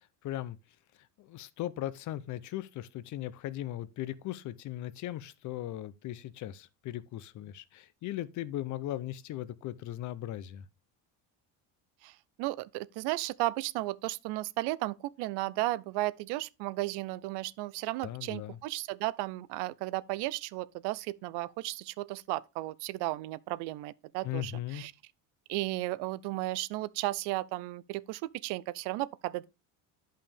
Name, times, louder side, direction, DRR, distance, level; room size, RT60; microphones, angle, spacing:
voice 1, 0.2-0.6 1.2-10.6 18.0-18.6 24.2-24.8, left 13 dB, 45° left, 0.6 m, -38 dB
voice 2, 12.0-24.9 25.5-29.5, right 18 dB, 75° right, 0.6 m, -34 dB
10.5 x 5.6 x 3.4 m
cardioid pair, 150°, 42 cm